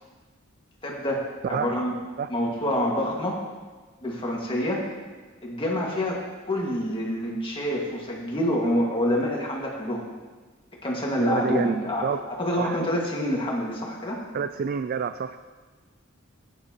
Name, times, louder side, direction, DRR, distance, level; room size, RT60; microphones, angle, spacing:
voice 1, 0.8-2.0 2.3-3.4 4.0-4.9 5.4-10.1 10.8-12.0 12.4-14.2, left 1 dB, 25° left, -3 dB, 1.8 m, -27 dB
voice 2, 11.2-11.8 12.0-12.3 12.6-12.8 14.3-15.4, right 6 dB, 50° right, 11 dB, 0.3 m, -28 dB
16.5 x 9.6 x 2.9 m, 1.4 s
head